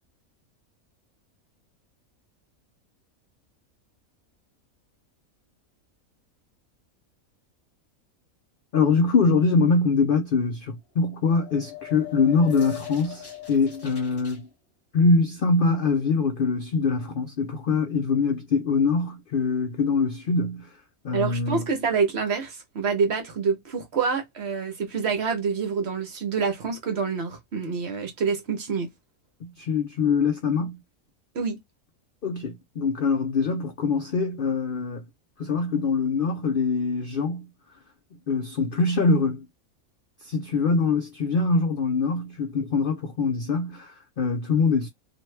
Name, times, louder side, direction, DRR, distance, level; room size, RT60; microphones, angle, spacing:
voice 1, 8.7-14.5 14.9-20.8 21.0-21.6 29.4-30.8 32.2-35.0 35.4-37.5 38.3-39.5 40.2-44.9, left 4 dB, 70° left, 0.5 m, -23 dB
sound 1, 11.1-14.4, left 8 dB, 20° left, 1.0 m, -40 dB
voice 2, 21.1-28.9 31.3-31.6, right 5 dB, 55° right, 1.0 m, -27 dB
3.0 x 2.6 x 3.2 m
omnidirectional pair, 1.5 m